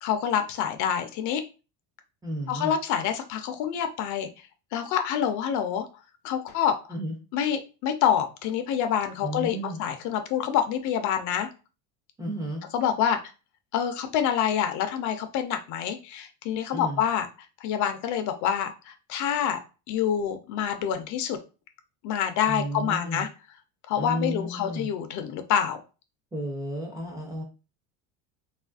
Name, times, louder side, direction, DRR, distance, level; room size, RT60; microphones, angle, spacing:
voice 1, 0.0-1.4 2.5-4.3 4.7-5.9 6.2-6.8 7.3-11.5 12.7-13.2 13.7-17.3 17.6-19.6 19.9-21.4 22.0-23.3 23.9-25.8, left 9 dB, 50° left, 7 dB, 0.4 m, -27 dB
voice 2, 2.2-2.7 6.9-7.2 9.2-9.8 12.2-12.6 16.7-17.0 22.5-23.3 24.0-24.9 26.3-27.4, right 1 dB, 10° right, -2 dB, 0.4 m, -32 dB
3.0 x 2.4 x 2.3 m, 0.32 s
cardioid pair, 145°, 38 cm